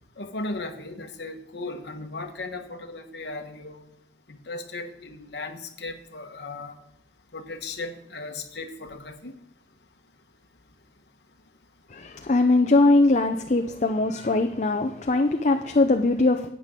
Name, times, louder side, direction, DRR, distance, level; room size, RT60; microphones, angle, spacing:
voice 1, 0.2-3.9 4.5-6.8 7.3-9.4, left 2 dB, 65° left, 1.2 m, -36 dB
voice 2, 11.9-16.5, left 2 dB, 40° left, 0.6 m, -21 dB
12.0 x 8.4 x 3.7 m
head